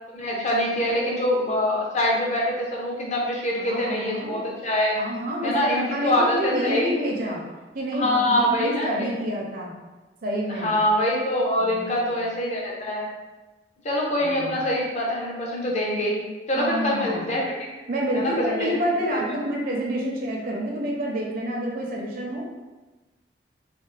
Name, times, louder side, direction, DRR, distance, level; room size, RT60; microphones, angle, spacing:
voice 1, 0.1-5.0 5.4-6.9 7.9-9.1 10.6-13.1 13.8-16.2 16.5-17.5 18.1-18.8 19.1-19.2, left 1 dB, 40° left, -2 dB, 0.6 m, -24 dB
voice 2, 3.6-4.4 4.9-7.4 7.7-9.7 10.2-10.8 11.6-12.1 14.2-14.7 16.6-17.3 17.9-22.5, equal, 55° right, -2 dB, 0.6 m, -28 dB
3.2 x 2.0 x 3.2 m, 1.2 s
head